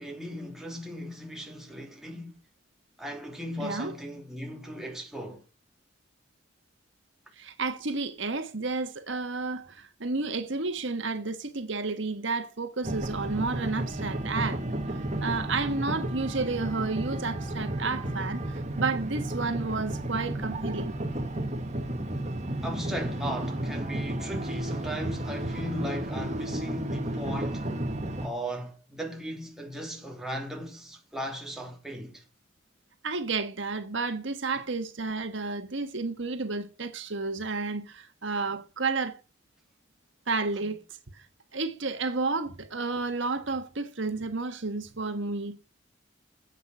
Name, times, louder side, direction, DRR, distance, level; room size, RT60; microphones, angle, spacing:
voice 1, 0.0-2.4 3.0-5.4 22.6-27.7 28.2-32.2, equal, ahead, 3.2 m, -37 dB
voice 2, 3.6-3.9 7.4-14.6 15.2-18.4 18.8-21.0 33.0-39.2 40.3-40.8 41.1-41.2 41.5-45.6, right 3 dB, 65° right, 1.4 m, -31 dB
sound 1, 12.8-28.3, right 1 dB, 35° right, 1.8 m, -32 dB
11.0 x 8.5 x 6.1 m
head